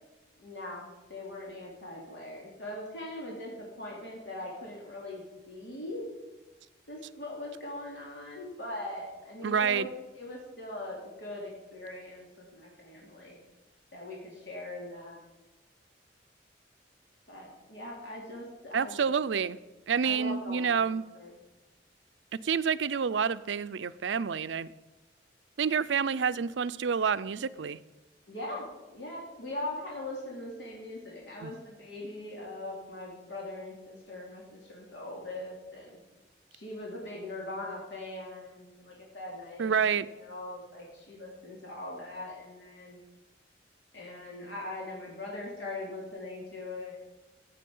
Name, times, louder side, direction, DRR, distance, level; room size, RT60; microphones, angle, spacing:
voice 1, 0.4-6.1 6.9-9.9 10.2-13.4 13.9-15.2 17.3-19.0 20.0-21.3 28.3-36.0 36.5-43.0 43.9-47.0, left 1 dB, 75° left, 2.9 m, -41 dB
voice 2, 9.4-9.9 18.7-19.6 19.9-21.0 22.4-24.7 25.6-27.8 31.4-31.5 39.6-40.1, right 6 dB, 80° right, 0.5 m, -28 dB
15.0 x 8.4 x 5.4 m
head